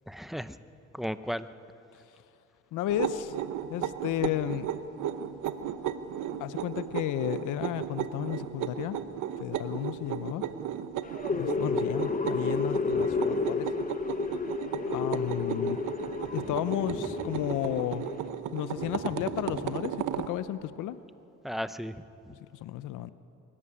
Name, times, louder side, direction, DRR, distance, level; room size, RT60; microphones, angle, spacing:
voice 1, 0.1-0.6 0.9-1.5 12.9-13.1 17.3-17.4 21.4-22.3, equal, ahead, 12 dB, 0.8 m, -35 dB
voice 2, 2.7-3.4 3.7-4.7 6.4-9.0 9.4-10.4 11.3-13.7 14.9-15.8 16.3-18.1 18.5-21.0 22.3-23.1, left 13 dB, 85° left, 14 dB, 0.7 m, -33 dB
sound 1, 2.9-20.3, right 9 dB, 80° right, 1.0 m, -35 dB
sound 2, 11.0-18.3, left 4 dB, 25° left, 1.1 m, -31 dB
22.5 x 14.0 x 9.9 m, 2.7 s
cardioid pair, 90°, 30 cm